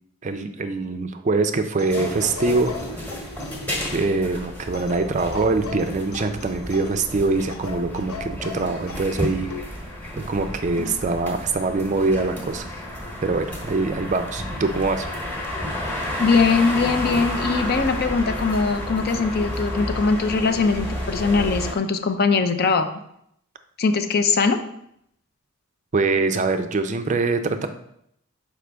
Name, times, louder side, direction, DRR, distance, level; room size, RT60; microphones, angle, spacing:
voice 1, 0.2-2.7 3.0-3.1 3.8-9.5 10.2-12.7 13.2-15.1 25.9-27.7, right 3 dB, 35° right, 8 dB, 0.4 m, -23 dB
sound 1, 1.8-4.0 4.7-7.1 7.5-9.7 10.8-11.0, left 3 dB, 80° left, 0.7 m, -37 dB
sound 2, 1.9-21.7, left 1 dB, 10° left, 1.1 m, -31 dB
voice 2, 16.2-22.9 23.8-24.6, left 4 dB, 45° left, 8 dB, 0.5 m, -21 dB
6.4 x 5.0 x 3.4 m, 0.73 s
head